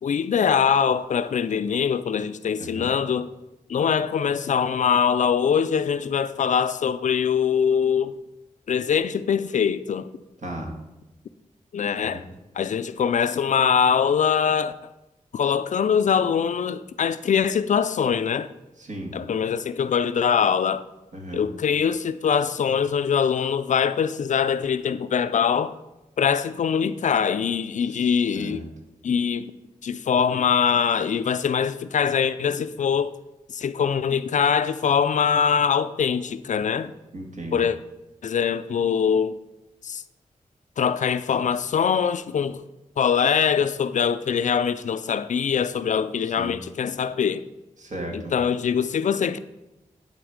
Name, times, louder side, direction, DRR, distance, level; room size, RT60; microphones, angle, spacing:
voice 1, 0.0-3.3 3.7-8.1 8.7-10.1 11.7-12.3 12.6-14.7 15.3-18.5 19.1-20.9 21.3-25.7 26.2-28.7 29.0-29.5 29.8-33.1 33.5-36.9 37.5-37.8 38.2-39.4 39.8-40.0 40.8-42.6 43.0-47.4 48.1-49.4, left 7 dB, 65° left, 0.4 m, -23 dB
voice 2, 2.6-2.9 10.4-10.7 12.0-12.2 18.8-19.1 21.1-21.4 27.8-28.7 37.1-37.6 46.4-46.5 47.8-48.3, right 1 dB, 70° right, 1.8 m, -36 dB
11.0 x 4.2 x 5.0 m
cardioid pair, 65°, 13 cm